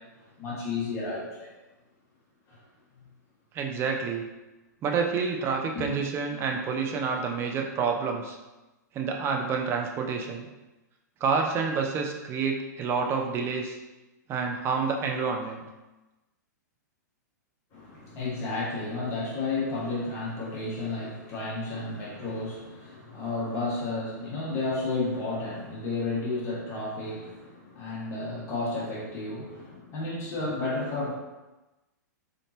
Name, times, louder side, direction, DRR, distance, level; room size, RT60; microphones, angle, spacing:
voice 1, 0.4-1.5 2.5-2.6 5.7-5.9 17.7-31.1, left 3 dB, 30° left, -6 dB, 1.5 m, -32 dB
voice 2, 3.5-4.2 4.8-8.4 8.9-10.5 11.2-13.8 14.3-15.6, right 5 dB, 25° right, 3 dB, 0.5 m, -28 dB
3.7 x 3.6 x 2.8 m, 1.1 s
hypercardioid pair, 125°, 10 cm